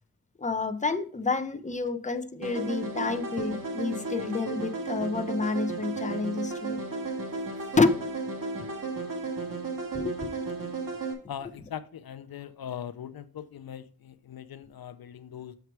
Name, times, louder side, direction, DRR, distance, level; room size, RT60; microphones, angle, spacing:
voice 1, 0.4-6.8 7.8-8.0 9.9-10.3, left 4 dB, 20° left, 0.7 m, -29 dB
sound 1, 2.4-11.1, right 3 dB, 65° right, 1.9 m, -34 dB
voice 2, 11.3-15.6, left 9 dB, 80° left, 0.6 m, -40 dB
6.5 x 4.7 x 4.6 m
wide cardioid pair, 65°, 35 cm